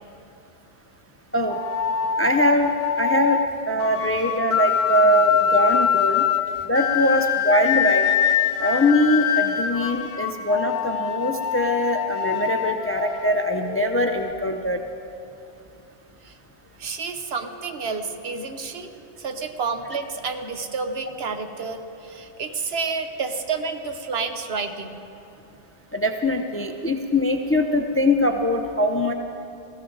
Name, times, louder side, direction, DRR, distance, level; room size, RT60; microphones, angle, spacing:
sound 1, 1.5-14.3, left 8 dB, 70° left, 0.9 m, -24 dB
voice 1, 2.2-3.4 3.7-6.2 6.7-8.1 8.6-14.8 25.9-29.1, left 1 dB, 15° left, 5 dB, 0.5 m, -22 dB
voice 2, 10.1-10.5 16.2-16.4 16.8-25.0, right 4 dB, 65° right, 6 dB, 1.1 m, -30 dB
20.5 x 15.0 x 3.9 m, 2.7 s
omnidirectional pair, 1.1 m